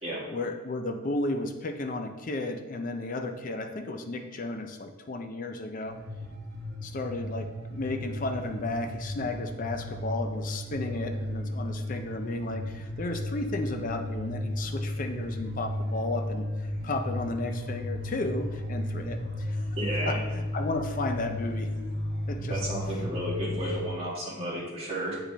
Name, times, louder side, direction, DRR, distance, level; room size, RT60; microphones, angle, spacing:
voice 1, 0.3-6.0 6.8-16.5 16.8-19.8 20.1-21.7 22.3-22.6, left 2 dB, 40° left, 6 dB, 0.4 m, -33 dB
sound 1, 5.8-23.7, left 1 dB, 50° right, 2.1 m, -34 dB
voice 2, 19.8-20.2 22.5-25.2, right 1 dB, 30° right, -6 dB, 2.1 m, -32 dB
8.4 x 5.0 x 3.3 m, 1.2 s
head